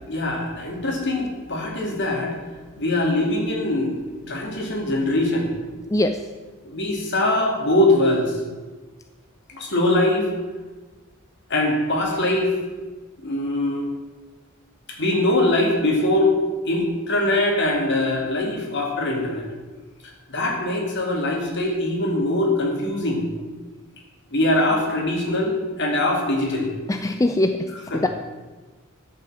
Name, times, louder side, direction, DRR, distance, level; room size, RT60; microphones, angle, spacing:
voice 1, 0.1-2.3 2.8-3.9 4.3-5.5 6.6-8.3 9.5-10.3 11.5-12.5 13.2-13.9 15.0-16.3 16.7-19.5 20.3-23.2 24.3-26.7 27.9-28.0, left 1 dB, 55° left, 0 dB, 2.5 m, -22 dB
voice 2, 5.9-6.2 26.9-28.1, left 1 dB, 15° left, 6 dB, 0.4 m, -22 dB
11.5 x 5.9 x 7.4 m, 1.3 s
head